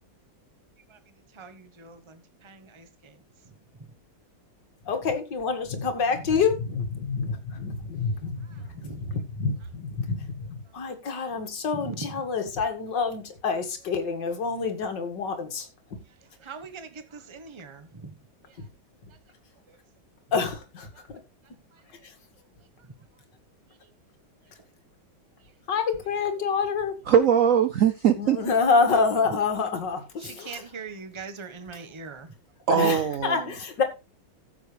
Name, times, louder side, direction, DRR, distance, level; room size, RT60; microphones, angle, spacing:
voice 1, 1.3-2.0 2.4-2.9 8.8-9.0 11.7-12.1 16.4-18.1 30.2-32.3, right 4 dB, 20° right, 0.9 m, -40 dB
voice 2, 4.9-8.5 8.8-15.7 20.3-20.9 25.7-26.9 28.2-30.6 32.7-33.8, left 5 dB, 60° left, 2.5 m, -27 dB
voice 3, 27.1-28.4 32.7-33.5, right 8 dB, 70° right, 0.8 m, -21 dB
15.0 x 7.4 x 3.3 m
omnidirectional pair, 2.2 m